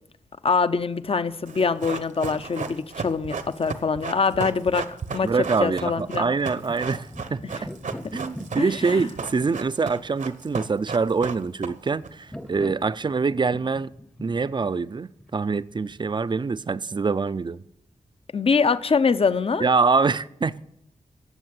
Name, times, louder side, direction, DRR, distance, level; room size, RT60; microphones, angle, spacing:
voice 1, 0.4-5.3 5.6-6.3 7.5-7.6 8.6-9.1 18.3-19.6, left 5 dB, 45° left, 0.7 m, -24 dB
Run, 1.5-12.1 12.4-12.5, right 5 dB, 70° right, 1.1 m, -34 dB
voice 2, 5.2-7.4 8.1-13.9 14.2-17.6 19.6-20.7, right 4 dB, 35° right, 0.5 m, -25 dB
sound 1, 6.7-16.0, equal, 5° left, 0.8 m, -42 dB
18.0 x 7.3 x 7.6 m
wide cardioid pair, 110°, 14 cm